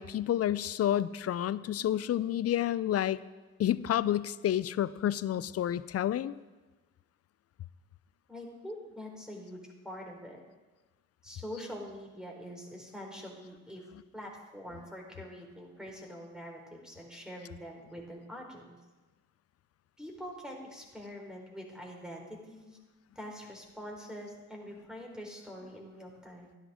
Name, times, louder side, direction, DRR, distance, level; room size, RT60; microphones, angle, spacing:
voice 1, 0.0-3.2 3.6-6.3, left 11 dB, 40° left, 17 dB, 0.6 m, -29 dB
voice 2, 8.3-10.4 11.2-13.8 14.1-18.8 20.0-22.8 23.2-26.6, equal, ahead, -1 dB, 4.2 m, -44 dB
15.5 x 11.0 x 3.8 m, 1.2 s
hypercardioid pair, 50°, 38 cm